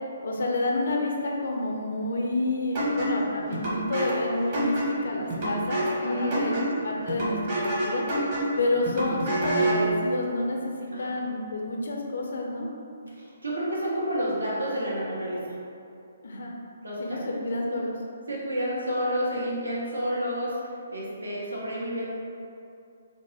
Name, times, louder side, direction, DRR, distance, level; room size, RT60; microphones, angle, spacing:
voice 1, 0.2-6.5 6.8-8.1 8.6-12.7 16.2-16.5 17.0-18.0, left 2 dB, 65° left, 0 dB, 0.5 m, -29 dB
sound 1, 2.7-9.9, right 1 dB, 40° right, 1.2 m, -28 dB
voice 2, 6.0-6.8 9.0-9.1 10.9-11.1 13.1-15.6 16.8-17.2 18.3-22.1, equal, 80° right, -6 dB, 0.9 m, -30 dB
3.4 x 2.1 x 4.0 m, 2.5 s
figure-of-eight pair, 135°, 0 cm